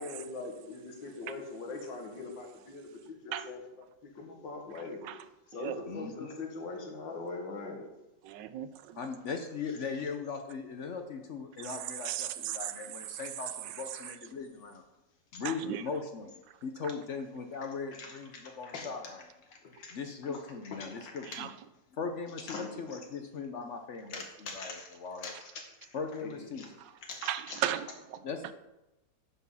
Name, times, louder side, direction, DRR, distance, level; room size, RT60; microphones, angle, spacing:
voice 1, 0.0-3.6 4.2-5.1 5.5-7.9 18.0-18.9 19.5-19.9 20.2-20.3 20.7-21.3 22.5-22.7 24.1-24.9 25.2-25.6 26.2-26.7 27.0-27.6, left 3 dB, 80° left, 2.3 m, -42 dB
voice 2, 5.9-6.4 9.0-14.8 15.3-19.2 19.9-21.5 21.9-24.2 24.5-25.3 25.9-26.7 28.2-28.5, left 5 dB, 60° left, 0.8 m, -39 dB
voice 3, 8.2-9.0 11.6-12.9 13.2-13.3 13.6-13.8 15.4-15.8 21.3-21.5 26.8-26.9 27.2-28.2, right 11 dB, 75° right, 1.2 m, -36 dB
9.5 x 6.2 x 5.5 m
omnidirectional pair, 2.0 m